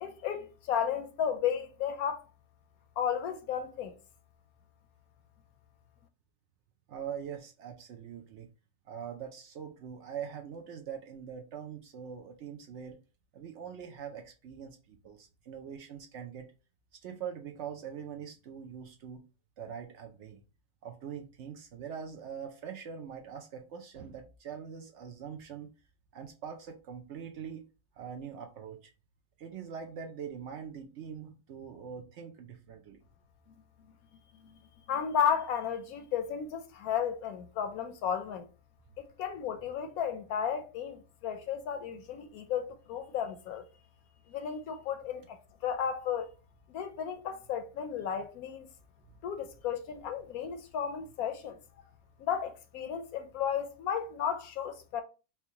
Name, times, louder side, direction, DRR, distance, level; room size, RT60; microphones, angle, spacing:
voice 1, 0.0-2.2 3.0-4.0 33.5-33.6 34.4-34.6 34.9-38.5 39.0-43.6 44.3-46.3 46.7-48.7 49.2-51.6 52.2-55.0, left 8 dB, 85° left, 1.1 m, -33 dB
voice 2, 6.9-8.5 8.9-13.0 13.3-16.5 17.0-19.2 19.6-20.4 20.8-25.7 26.1-27.6 28.0-28.9 29.4-33.0, right 7 dB, 65° right, 0.7 m, -43 dB
4.4 x 2.2 x 2.8 m
omnidirectional pair, 1.5 m